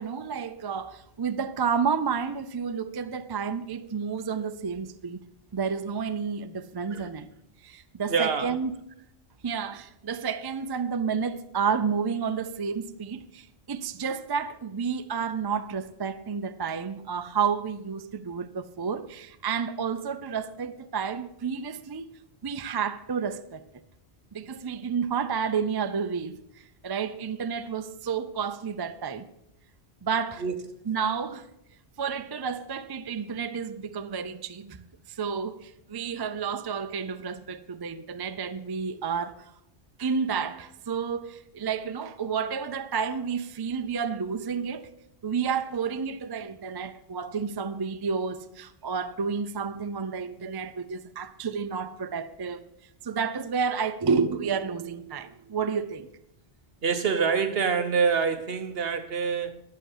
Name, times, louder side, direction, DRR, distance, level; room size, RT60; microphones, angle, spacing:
voice 1, 0.0-5.2 5.5-7.3 7.6-8.7 9.4-22.1 22.4-23.6 24.3-29.3 30.0-30.4 30.9-31.5 32.0-39.5 40.0-44.9 45.2-52.6 53.0-56.1, right 6 dB, 35° right, 0.4 m, -30 dB
voice 2, 8.1-8.6 30.4-30.6 56.8-59.5, right 6 dB, 65° right, 1.2 m, -26 dB
11.5 x 6.8 x 7.2 m
omnidirectional pair, 1.1 m